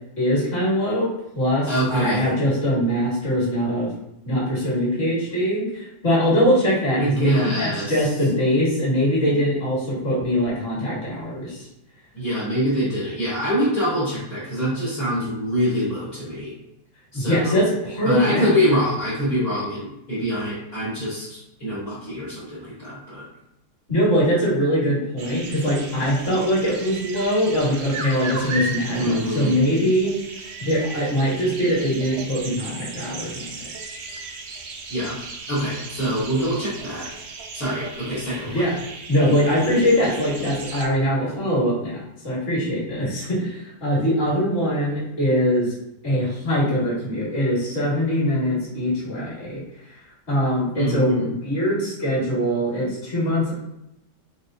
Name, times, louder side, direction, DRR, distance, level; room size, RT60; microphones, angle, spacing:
voice 1, 0.2-1.1 1.3-3.9 4.2-11.7 17.1-18.6 23.9-30.1 30.6-33.7 38.5-38.8 39.1-45.7 46.0-49.6 50.3-53.5, equal, 40° left, -6 dB, 1.9 m, -22 dB
voice 2, 1.7-2.3 7.0-7.9 12.1-16.5 17.1-17.7 18.0-23.2 29.0-29.5 34.9-35.2 35.5-37.1 37.5-38.6 50.7-51.3, equal, 55° left, -9 dB, 1.9 m, -25 dB
sound 1, 25.2-40.8, right 3 dB, 75° right, 0.6 m, -36 dB
4.2 x 3.5 x 2.7 m, 0.86 s
omnidirectional pair, 1.9 m